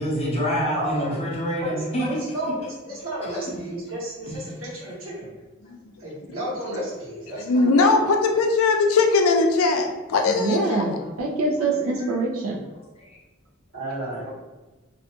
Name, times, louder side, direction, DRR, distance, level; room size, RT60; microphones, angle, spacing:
voice 1, 0.0-2.2 4.3-4.4 11.0-11.1 13.0-13.1, equal, 30° left, -4 dB, 0.7 m, -26 dB
voice 2, 0.7-1.2 1.6-2.6 2.9-5.3 6.0-8.2 13.7-14.3, right 1 dB, 70° right, -7 dB, 1.2 m, -32 dB
voice 3, 7.4-10.9, left 3 dB, 85° left, 4 dB, 0.4 m, -20 dB
voice 4, 10.3-12.6, right 2 dB, 85° right, -1 dB, 0.5 m, -25 dB
2.6 x 2.2 x 2.8 m, 1.2 s
head